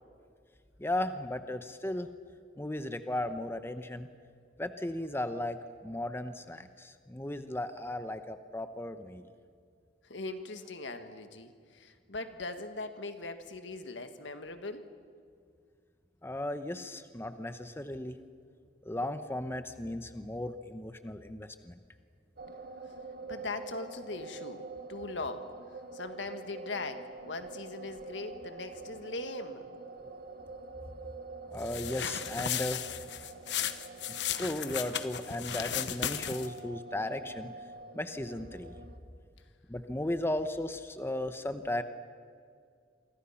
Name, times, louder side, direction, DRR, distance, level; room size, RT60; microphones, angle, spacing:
voice 1, 0.8-2.1 2.6-4.1 4.6-9.2 16.2-18.2 18.8-21.8 31.5-32.8 34.1-37.5 37.9-38.8 39.7-41.8, left 1 dB, 15° left, 9 dB, 0.9 m, -36 dB
voice 2, 10.1-14.9 23.3-24.6 24.9-25.5 25.9-29.7, left 3 dB, 85° left, 8 dB, 1.8 m, -40 dB
sound 1, 22.4-39.0, right 3 dB, 55° right, 1.6 m, -46 dB
sound 2, 31.6-36.6, left 9 dB, 70° left, 1.1 m, -35 dB
28.5 x 24.5 x 5.8 m, 2.2 s
head